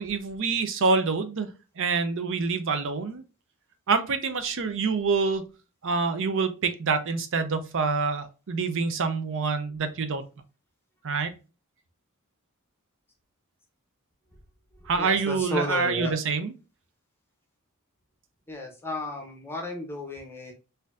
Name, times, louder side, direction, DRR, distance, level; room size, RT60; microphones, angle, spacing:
voice 1, 0.0-1.5 1.8-3.2 3.9-5.5 5.8-10.2 11.0-11.3 14.9-16.5, right 4 dB, 60° right, 10 dB, 0.5 m, -26 dB
voice 2, 15.0-16.2 18.5-20.5, left 1 dB, 10° left, 2 dB, 0.7 m, -33 dB
4.2 x 2.6 x 2.4 m, 0.32 s
head